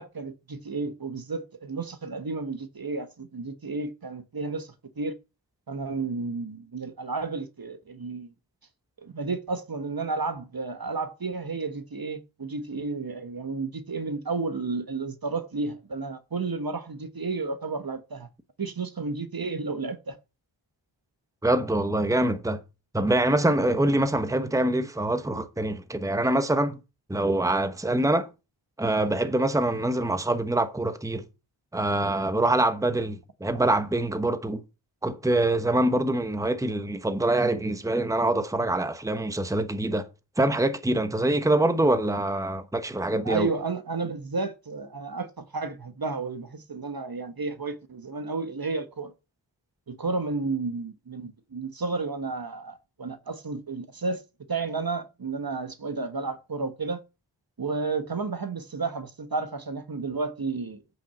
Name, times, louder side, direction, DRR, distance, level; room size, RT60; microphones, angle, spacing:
voice 1, 0.0-5.2 5.7-8.3 9.0-18.3 18.6-20.2 23.8-23.9 43.2-49.1 49.9-54.2 54.5-57.0 57.6-60.8, right 3 dB, 50° right, 1.2 m, -32 dB
voice 2, 21.4-22.6 22.9-26.8 27.1-28.3 28.8-31.2 31.7-34.6 35.0-40.1 40.4-43.5, right 1 dB, 5° right, 1.0 m, -25 dB
8.5 x 6.2 x 7.1 m
wide cardioid pair, 75°, 46 cm